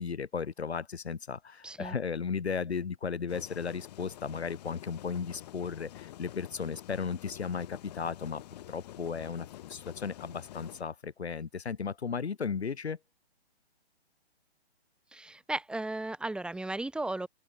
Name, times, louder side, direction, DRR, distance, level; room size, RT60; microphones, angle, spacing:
voice 1, 0.0-8.4 8.7-13.0, left 6 dB, 75° left, 4.6 m, -35 dB
voice 2, 1.6-2.0 15.1-17.3, right 2 dB, 5° right, 6.4 m, -35 dB
sound 1, 3.3-10.8, left 13 dB, 40° left, 5.0 m, -48 dB
open air
hypercardioid pair, 150°, 33 cm